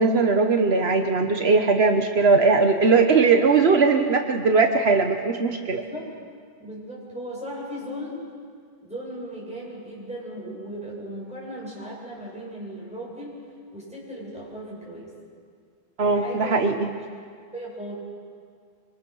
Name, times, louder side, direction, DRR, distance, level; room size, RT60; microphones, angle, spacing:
voice 1, 0.0-5.8 16.0-16.9, right 4 dB, 75° right, 5 dB, 1.4 m, -19 dB
voice 2, 5.7-6.1 6.6-8.3 8.8-13.4 13.7-15.1 16.1-16.7 17.5-17.9, equal, 5° right, -5 dB, 8.0 m, -37 dB
25.5 x 25.0 x 6.4 m, 2.1 s
omnidirectional pair, 1.1 m